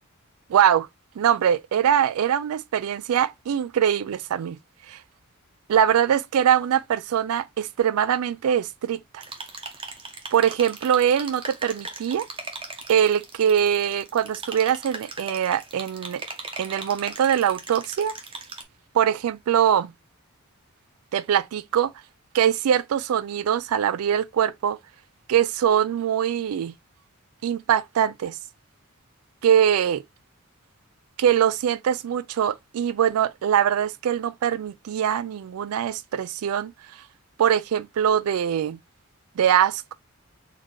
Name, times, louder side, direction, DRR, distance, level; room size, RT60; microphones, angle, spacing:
voice 1, 0.5-0.9 1.2-4.6 4.9-5.0 5.7-9.2 10.3-12.3 12.9-16.2 16.6-18.1 18.9-19.9 21.1-21.9 22.3-24.8 25.3-26.7 27.4-28.4 29.4-30.0 31.2-36.7 37.4-38.8 39.4-39.9, right 9 dB, 85° right, 0.3 m, -22 dB
sound 1, 9.2-18.6, right 3 dB, 25° right, 0.7 m, -39 dB
4.1 x 2.7 x 3.0 m
head